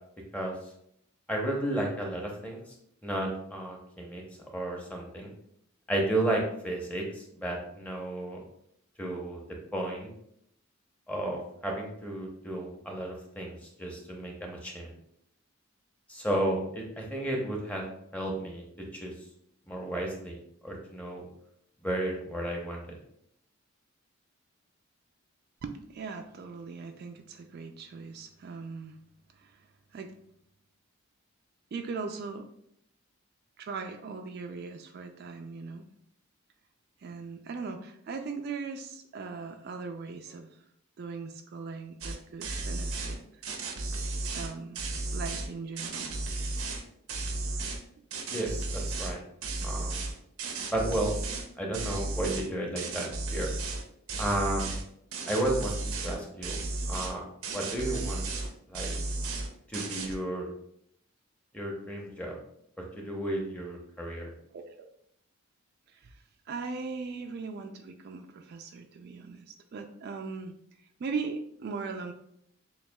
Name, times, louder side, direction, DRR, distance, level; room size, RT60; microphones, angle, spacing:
voice 1, 1.3-2.6 3.0-4.2 4.5-5.3 5.9-8.4 9.0-9.4 9.7-10.1 11.1-14.9 16.1-17.8 18.1-18.6 18.9-19.1 19.7-20.4 20.6-21.2 21.8-22.9 48.3-49.2 49.6-50.0 50.7-51.1 51.6-53.5 54.2-54.7 55.3-56.6 56.9-57.2 57.5-58.3 58.7-58.9 59.7-60.5 61.5-62.4 62.8-64.3, right 1 dB, 5° left, 0 dB, 0.7 m, -33 dB
voice 2, 25.6-29.0 29.3-29.7 29.9-30.1 31.7-32.5 33.6-35.8 37.0-40.6 41.0-43.4 44.3-44.8 45.1-46.1 64.5-64.9 65.9-72.1, right 4 dB, 50° right, 6 dB, 0.3 m, -39 dB
sound 1, 42.0-42.2 42.4-43.2 43.4-45.5 45.8-46.8 47.1-47.8 48.1-49.1 49.4-51.5 51.7-52.5 52.8-53.8 54.1-54.8 55.1-56.2 56.4-57.1 57.4-58.5 58.7-59.5 59.7-60.2, right 2 dB, 85° right, 0.6 m, -34 dB
6.9 x 2.3 x 2.2 m, 0.71 s
head